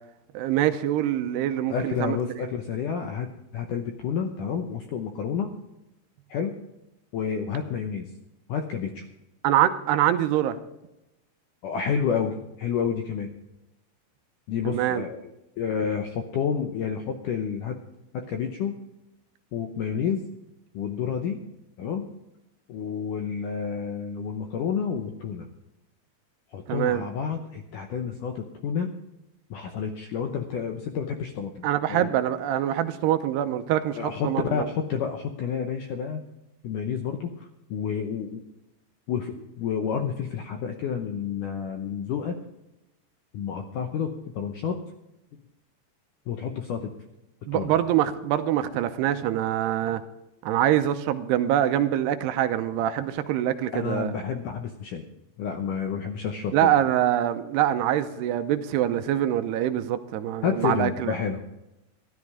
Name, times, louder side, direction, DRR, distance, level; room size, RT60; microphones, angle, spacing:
voice 1, 0.3-2.2 9.4-10.6 14.7-15.0 26.7-27.1 31.6-34.7 47.5-50.0 50.4-54.1 56.5-61.1, right 11 dB, 85° right, 10 dB, 2.8 m, -24 dB
voice 2, 1.7-5.5 6.3-6.6 7.1-8.1 8.5-9.0 11.6-13.3 14.5-15.3 15.6-17.8 18.1-18.8 19.5-20.2 20.7-21.4 21.8-22.1 22.7-25.5 26.5-28.9 29.5-32.1 34.0-36.2 36.6-38.4 39.1-42.4 43.3-44.8 46.3-46.9 47.5-47.7 53.7-55.1 55.4-56.7 60.4-61.4, left 7 dB, 80° left, 5 dB, 1.9 m, -30 dB
13.0 x 12.5 x 4.9 m, 0.92 s
omnidirectional pair, 4.9 m